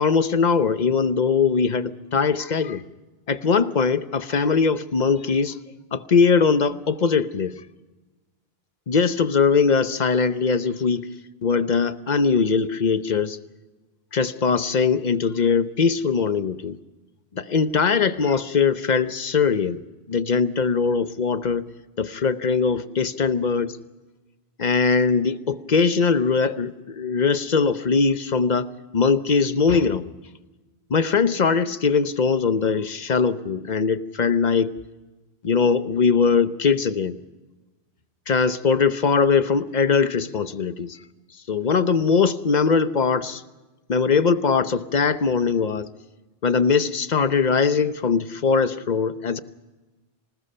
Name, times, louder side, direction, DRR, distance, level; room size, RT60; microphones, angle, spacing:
voice 1, 0.0-2.8 3.3-5.6 5.9-7.5 8.9-11.1 11.4-13.4 14.1-16.8 17.3-19.8 20.1-21.7 22.0-23.8 24.6-28.7 28.9-30.1 30.9-34.7 35.4-37.2 38.3-41.0 41.5-43.4 43.9-45.9 46.4-49.4, left 5 dB, 45° left, 12 dB, 0.9 m, -21 dB
26.5 x 19.5 x 5.6 m, 1.2 s
omnidirectional pair, 1.1 m